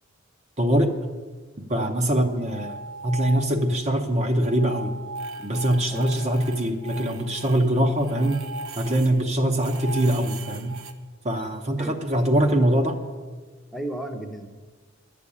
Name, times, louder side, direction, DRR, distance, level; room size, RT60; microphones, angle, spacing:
voice 1, 0.6-0.9 1.7-2.8 3.0-4.9 5.4-8.4 8.8-10.8 11.2-13.0, right 1 dB, 30° right, 5 dB, 0.9 m, -23 dB
sound 1, 2.3-3.9 4.1-9.2 9.6-10.9, right 2 dB, 75° right, 0.9 m, -38 dB
voice 2, 13.7-14.5, right 1 dB, ahead, 3 dB, 0.8 m, -34 dB
11.0 x 6.8 x 8.5 m, 1.4 s
head